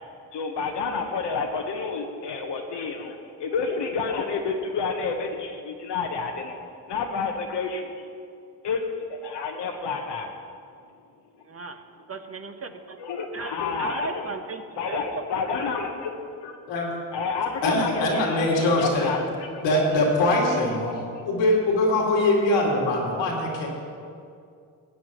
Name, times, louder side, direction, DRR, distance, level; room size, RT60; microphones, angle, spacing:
voice 1, 0.3-6.6 6.9-8.1 8.6-10.3 13.0-14.3 14.8-16.1 16.4-16.6 17.1-19.6 20.5-20.7, left 5 dB, 65° left, 2 dB, 1.1 m, -29 dB
voice 2, 11.4-11.8 12.1-13.0 13.3-14.6 14.9-15.2 15.6-15.7, right 3 dB, 30° right, 7 dB, 1.0 m, -35 dB
voice 3, 17.6-19.1 19.6-23.7, left 1 dB, 80° left, -2 dB, 2.4 m, -22 dB
16.0 x 9.0 x 3.0 m, 2.4 s
supercardioid pair, 55°, 45 cm